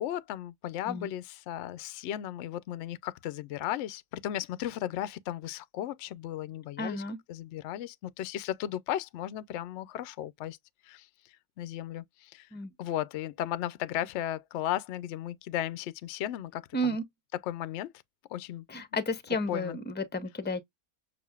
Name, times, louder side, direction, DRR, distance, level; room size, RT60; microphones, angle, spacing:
voice 1, 0.0-7.0 7.3-10.6 10.9-11.1 11.6-12.5 12.8-17.0 17.3-17.9 18.3-18.6 19.5-19.8, left 12 dB, 65° left, 0.7 m, -35 dB
voice 2, 6.8-7.2 12.5-12.7 16.7-17.0 18.7-20.6, left 1 dB, 10° left, 0.5 m, -32 dB
6.9 x 2.5 x 2.3 m
omnidirectional pair, 1.5 m